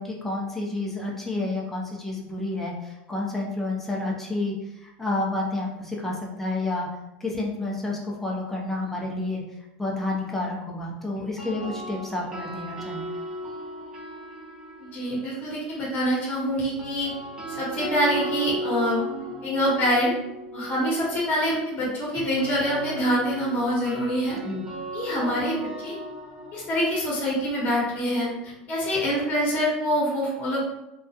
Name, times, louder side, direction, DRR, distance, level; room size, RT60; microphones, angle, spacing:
voice 1, 0.0-4.5 4.8-6.9 7.2-9.4 9.8-13.1 24.4-24.6, left 2 dB, 5° left, -2 dB, 0.5 m, -30 dB
sound 1, 11.2-15.3 16.6-28.5, right 1 dB, 15° right, 0.9 m, -37 dB
voice 2, 14.8-17.1 17.6-19.0 19.4-20.1 20.5-24.4 24.9-26.0 26.5-30.6, equal, 35° left, -4 dB, 0.9 m, -25 dB
2.3 x 2.1 x 2.7 m, 0.92 s
supercardioid pair, 115°, 5 cm